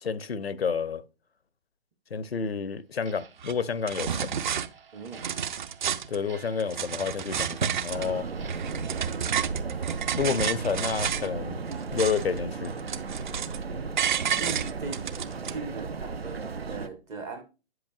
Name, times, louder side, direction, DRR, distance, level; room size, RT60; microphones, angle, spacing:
voice 1, 0.0-1.0 2.1-4.4 6.1-8.3 10.1-11.6 11.9-12.7, left 6 dB, 85° left, 0.7 m, -29 dB
Clock, 3.0-10.2 10.5-10.7 11.1-11.2 11.7-11.8 12.3-12.4 12.9-13.0 13.5-13.7, right 6 dB, 70° right, 1.2 m, -52 dB
sound 1, 3.4-3.5 3.9-4.7 5.1-6.2 6.6-8.1 8.5-11.3 11.7-12.4 12.6-13.6 14.0-15.5, right 8 dB, 50° right, 0.7 m, -30 dB
voice 2, 4.9-5.2 14.4-15.2 15.4-17.4, right 4 dB, 10° right, 0.4 m, -39 dB
sound 2, 7.9-16.9, right 4 dB, 85° right, 0.7 m, -35 dB
8.4 x 7.8 x 2.4 m
figure-of-eight pair, 130°, 30 cm